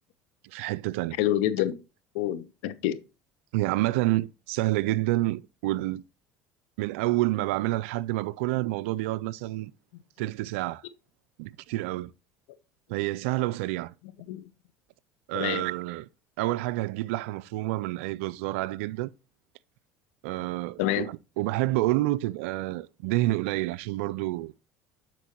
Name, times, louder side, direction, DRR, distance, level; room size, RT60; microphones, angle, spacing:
voice 1, 0.4-1.2 3.5-6.0 6.8-9.7 10.2-10.8 11.4-12.1 12.9-13.9 15.3-16.1 16.4-19.1 20.2-24.5, right 18 dB, 80° right, 0.3 m, -28 dB
voice 2, 1.2-1.8 2.1-3.0 14.3-14.4 15.3-15.6 20.8-21.1, left 12 dB, 75° left, 0.8 m, -27 dB
12.0 x 4.5 x 2.9 m
hypercardioid pair, 85°, 7 cm